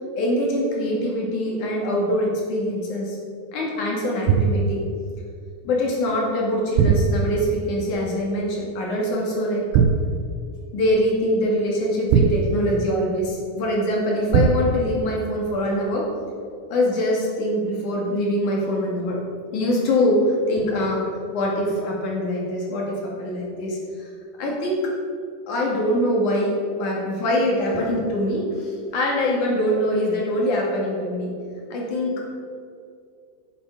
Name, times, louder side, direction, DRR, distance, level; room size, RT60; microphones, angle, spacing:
voice 1, 0.1-3.2 3.5-4.8 5.6-9.6 10.7-16.1 16.7-19.2 19.5-21.1 21.3-24.1 24.4-24.9 25.5-31.4 31.7-32.2, left 1 dB, 50° left, -3 dB, 3.1 m, -23 dB
sound 1, 4.3-4.8 6.8-7.5 9.7-10.3 12.1-13.0 14.3-14.9, right 6 dB, 85° right, 2.4 m, -19 dB
11.0 x 9.7 x 4.9 m, 2.4 s
omnidirectional pair, 5.2 m